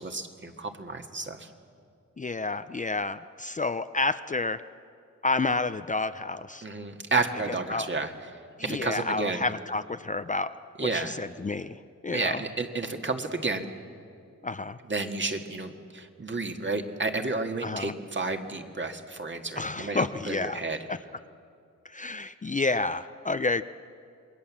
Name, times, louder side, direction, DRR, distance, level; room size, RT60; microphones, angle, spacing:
voice 1, 0.0-1.5 6.6-8.1 8.6-9.5 10.8-11.2 12.1-13.7 14.9-20.8, right 3 dB, 40° right, 5 dB, 1.9 m, -31 dB
voice 2, 2.2-4.6 5.2-6.6 7.5-7.9 8.6-10.5 10.8-11.8 12.0-12.4 14.4-14.8 17.6-17.9 19.6-20.6 20.9-21.0 21.8-23.6, left 3 dB, 25° left, 11 dB, 0.6 m, -30 dB
27.5 x 21.5 x 7.4 m, 2.4 s
wide cardioid pair, 80°, 30 cm